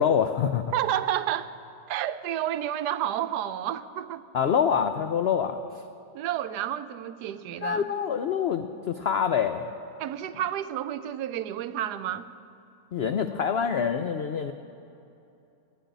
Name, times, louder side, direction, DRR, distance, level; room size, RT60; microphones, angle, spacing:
voice 1, 0.0-0.6 4.3-5.8 7.6-9.7 12.9-14.5, left 7 dB, 80° left, 8 dB, 0.5 m, -26 dB
voice 2, 0.7-1.5 1.9-4.2 6.1-7.9 10.0-12.3, right 11 dB, 80° right, 12 dB, 1.2 m, -30 dB
12.5 x 9.3 x 9.2 m, 2.7 s
omnidirectional pair, 1.7 m